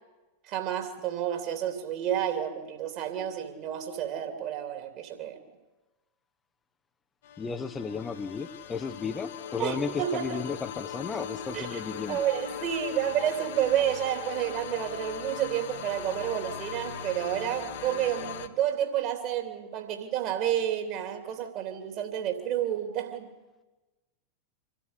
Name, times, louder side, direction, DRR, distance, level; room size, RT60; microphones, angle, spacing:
voice 1, 0.5-5.4 9.6-10.4 11.5-11.8 12.1-23.3, right 10 dB, 40° right, 5 dB, 3.2 m, -30 dB
sound 1, 7.2-18.5, left 8 dB, 55° left, 1.5 m, -40 dB
voice 2, 7.4-12.2, left 5 dB, 15° left, 7 dB, 1.0 m, -34 dB
26.0 x 13.0 x 9.7 m, 1.1 s
figure-of-eight pair, 90°, 0 cm